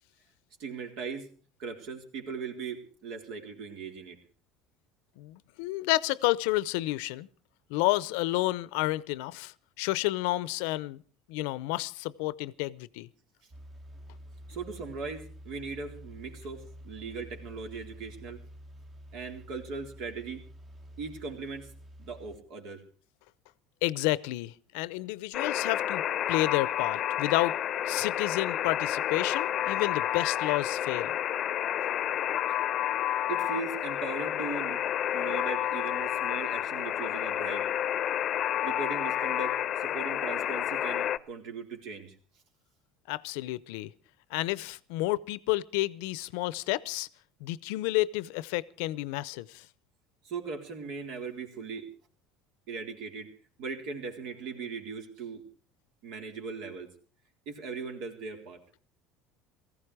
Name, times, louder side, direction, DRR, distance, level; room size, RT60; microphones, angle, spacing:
voice 1, 0.6-1.3 1.6-4.2 14.5-18.4 19.1-20.4 21.0-21.7 22.0-22.8 33.3-34.8 35.1-37.7 38.6-42.1 50.2-51.9 52.7-53.3 53.6-55.4 56.0-56.9 57.5-58.6, right 4 dB, 65° right, 3.9 m, -39 dB
voice 2, 5.2-7.3 7.7-11.0 11.3-13.1 23.8-26.0 26.3-27.6 27.9-31.1 43.1-43.9 44.3-47.1 47.4-49.7, left 18 dB, 80° left, 0.7 m, -30 dB
sound 1, 13.5-22.4, equal, 25° right, 1.5 m, -49 dB
Alarm, 25.3-41.2, left 11 dB, 45° left, 0.7 m, -30 dB
18.0 x 15.0 x 4.9 m
supercardioid pair, 125°, 0 cm